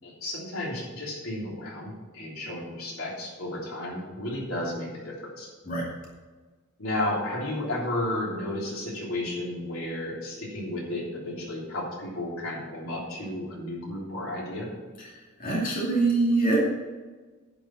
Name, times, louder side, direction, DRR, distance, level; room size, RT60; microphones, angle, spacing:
voice 1, 0.0-5.5 6.8-14.7, left 1 dB, 90° left, -4 dB, 3.5 m, -33 dB
voice 2, 15.4-16.6, right 3 dB, 40° left, -4 dB, 2.4 m, -24 dB
10.5 x 5.4 x 7.6 m, 1.3 s
head